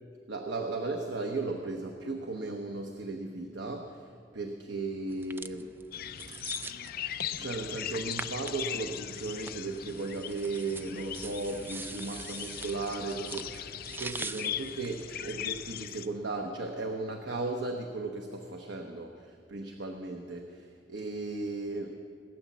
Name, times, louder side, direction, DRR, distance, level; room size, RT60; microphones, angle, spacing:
voice 1, 0.3-5.7 6.7-6.8 7.3-22.0, right 3 dB, 85° right, 3 dB, 1.0 m, -36 dB
sound 1, 5.1-15.8, right 3 dB, 10° right, 0.3 m, -45 dB
sound 2, 5.9-16.1, left 10 dB, 55° left, 0.5 m, -39 dB
18.5 x 9.3 x 7.3 m, 2.3 s
head